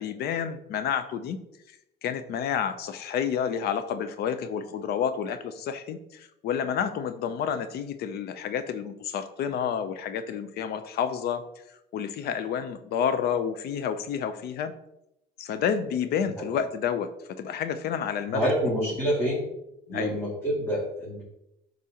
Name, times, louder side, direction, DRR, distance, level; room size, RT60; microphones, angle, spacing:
voice 1, 0.0-1.4 2.0-11.4 11.7-14.7 15.4-18.5 18.8-18.9 19.9-20.2, left 8 dB, 70° left, 11 dB, 0.6 m, -30 dB
voice 2, 18.3-19.4 19.9-21.2, equal, 15° left, -8 dB, 2.5 m, -27 dB
11.0 x 4.0 x 2.9 m, 0.84 s
cardioid pair, 110°, 17 cm